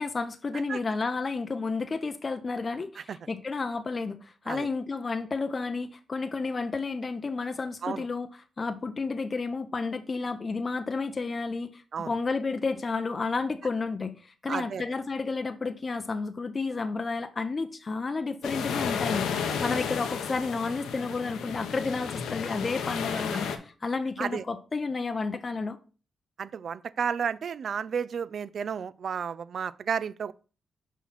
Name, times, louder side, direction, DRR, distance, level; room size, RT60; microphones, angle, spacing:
voice 1, 0.0-8.3 8.6-25.8, left 4 dB, 40° left, 0.5 m, -31 dB
voice 2, 14.5-14.8 24.2-24.4 26.4-30.3, right 7 dB, 65° right, 0.3 m, -32 dB
sound 1, 18.4-23.6, left 7 dB, 90° left, 0.7 m, -32 dB
5.8 x 3.1 x 5.5 m
cardioid pair, 70°, 0 cm